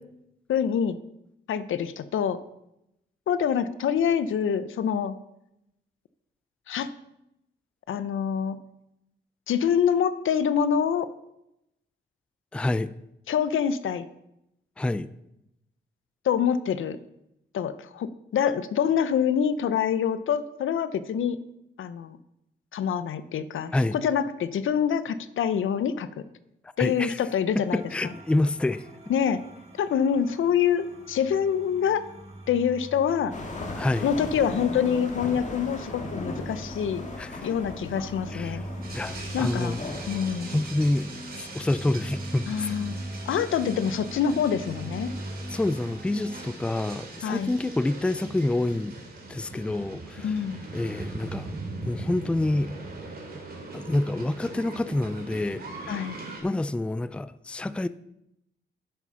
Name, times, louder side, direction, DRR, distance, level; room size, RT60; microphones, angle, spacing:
voice 1, 0.5-1.0 1.5-2.4 3.3-5.2 6.7-6.9 7.9-8.6 9.5-11.1 13.3-14.1 16.2-17.0 17.5-21.4 21.8-22.2 22.7-26.1 26.8-28.1 29.1-29.4 29.8-32.0 32.5-33.3 34.0-37.1 37.4-38.6 39.3-39.8 40.1-40.6 42.5-43.0 43.3-45.1 47.2-47.6 50.2-50.6 55.9-56.2, left 8 dB, 85° left, 0.7 m, -26 dB
voice 2, 12.5-12.9 14.8-15.1 23.7-24.0 26.8-27.2 27.7-28.9 33.8-34.1 37.2-37.4 38.3-38.6 38.9-40.0 40.5-41.1 41.4-42.7 45.5-49.0 49.3-50.4 50.7-51.5 51.8-52.7 53.7-56.0 56.4-57.9, left 2 dB, 5° left, 0.3 m, -27 dB
sound 1, 27.6-46.5, equal, 30° right, 2.1 m, -41 dB
sound 2, 33.3-40.4, left 2 dB, 35° left, 2.0 m, -37 dB
sound 3, 38.8-56.4, right 3 dB, 50° right, 2.4 m, -41 dB
10.0 x 7.4 x 5.6 m
wide cardioid pair, 115°, 20 cm